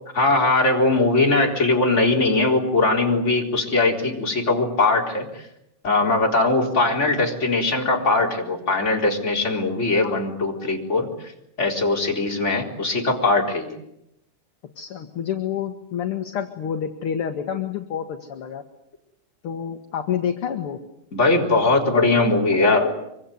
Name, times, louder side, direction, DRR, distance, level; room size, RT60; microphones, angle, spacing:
voice 1, 0.1-5.4 5.8-11.1 11.6-13.8 21.1-22.9, left 2 dB, 20° left, 1 dB, 4.3 m, -20 dB
voice 2, 14.8-18.6 19.4-20.8, left 8 dB, 50° left, 6 dB, 2.1 m, -28 dB
25.0 x 24.5 x 9.4 m, 0.80 s
omnidirectional pair, 3.5 m